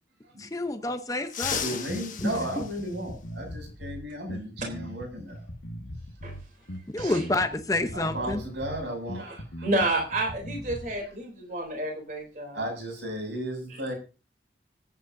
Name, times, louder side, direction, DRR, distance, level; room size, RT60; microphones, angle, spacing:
voice 1, 0.4-1.6 2.2-2.3 6.9-8.4, left 2 dB, 20° left, 0.8 m, -28 dB
sound 1, 1.2-3.7 5.3-5.4 6.6-6.7 8.4-8.5 8.9-9.1 9.6-11.7 12.0-12.3 12.7-13.1, left 8 dB, 45° left, 1.3 m, -38 dB
Bass guitar, 1.4-11.0, equal, 85° left, 1.6 m, -40 dB
voice 2, 1.6-5.5 6.7-6.8 7.9-9.8 10.6-11.2 12.5-14.0, equal, 85° right, 7.1 m, -35 dB
voice 3, 9.6-12.6, right 2 dB, 45° right, 3.6 m, -29 dB
25.0 x 9.4 x 2.7 m
head